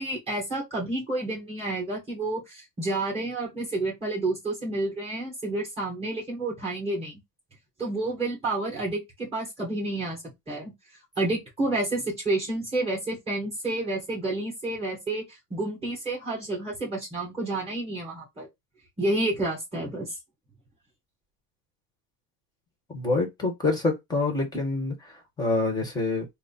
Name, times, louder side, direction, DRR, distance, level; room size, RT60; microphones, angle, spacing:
voice 1, 0.0-7.2 7.8-10.7 11.2-15.3 15.5-18.5 19.0-20.2, right 2 dB, 15° right, 1.8 m, -30 dB
voice 2, 22.9-26.3, left 3 dB, 10° left, 1.2 m, -27 dB
4.0 x 2.1 x 4.0 m
cardioid pair, 165°, 36 cm